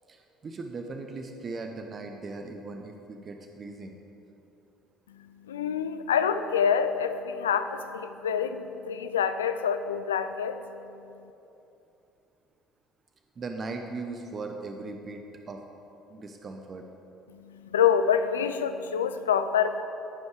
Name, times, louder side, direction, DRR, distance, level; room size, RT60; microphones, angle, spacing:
voice 1, 0.1-4.0 13.4-15.2 15.5-15.6 16.1-16.8, right 3 dB, 40° right, 4 dB, 0.8 m, -38 dB
voice 2, 5.1-11.0 17.3-19.8, left 7 dB, 85° left, 9 dB, 0.4 m, -27 dB
14.5 x 5.3 x 4.9 m, 2.9 s
hypercardioid pair, 60°, 0 cm